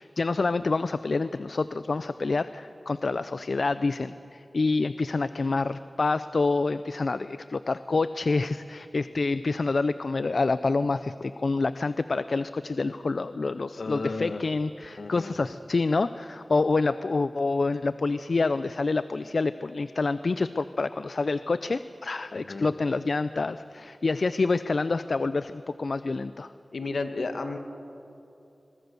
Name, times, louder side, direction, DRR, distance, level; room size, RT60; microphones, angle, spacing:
voice 1, 0.0-26.5, left 3 dB, 60° left, 13 dB, 0.4 m, -27 dB
voice 2, 13.8-14.4 15.0-15.3 22.4-22.7 26.7-27.6, left 3 dB, 75° left, 6 dB, 1.7 m, -33 dB
22.5 x 22.0 x 6.9 m, 2.8 s
wide cardioid pair, 85°, 0 cm